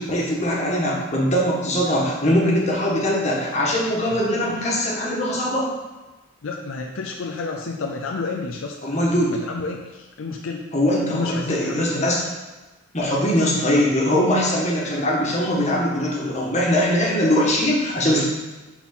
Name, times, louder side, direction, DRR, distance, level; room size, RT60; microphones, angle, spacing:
voice 1, 0.0-5.7 8.8-9.4 10.7-12.2 12.9-18.3, equal, 30° left, -4 dB, 1.5 m, -21 dB
voice 2, 4.1-4.5 6.4-8.8 9.3-10.6 11.1-12.1, left 3 dB, 70° left, 1 dB, 0.5 m, -30 dB
5.9 x 4.2 x 5.9 m, 1.2 s
head